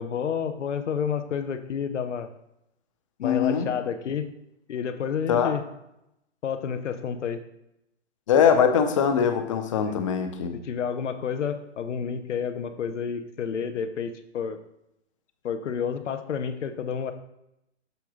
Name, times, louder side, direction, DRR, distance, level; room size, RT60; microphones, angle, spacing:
voice 1, 0.0-2.3 3.2-4.3 4.7-5.6 6.4-7.4 9.9-10.0 10.5-14.6 15.4-17.1, left 7 dB, 80° left, 9 dB, 0.9 m, -30 dB
voice 2, 3.2-3.7 5.3-5.5 8.3-10.5, left 7 dB, 25° left, 6 dB, 0.6 m, -22 dB
6.9 x 3.5 x 6.1 m, 0.83 s
hypercardioid pair, 160°, 36 cm